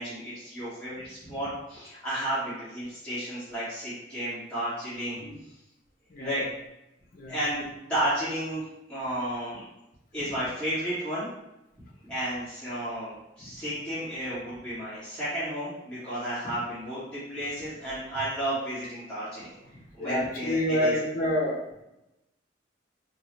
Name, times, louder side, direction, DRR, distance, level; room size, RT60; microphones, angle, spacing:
voice 1, 0.0-5.2 6.2-6.4 7.3-9.6 10.1-11.3 12.0-19.5 20.0-20.9, right 1 dB, 5° left, -14 dB, 1.5 m, -32 dB
voice 2, 6.1-6.4 7.1-7.3 20.0-21.8, left 1 dB, 50° left, 0 dB, 0.7 m, -28 dB
3.7 x 2.3 x 3.1 m, 0.91 s
head